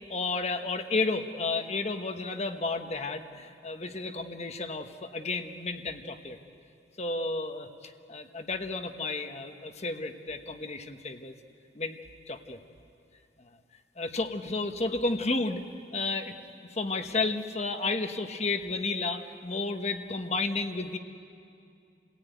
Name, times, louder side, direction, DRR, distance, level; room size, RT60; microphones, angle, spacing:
voice 1, 0.1-6.4 7.0-11.3 11.7-12.0 12.3-12.6 14.0-15.6 15.9-16.3 16.7-21.0, left 3 dB, 35° left, 7 dB, 1.1 m, -32 dB
29.0 x 17.0 x 9.3 m, 2.5 s
head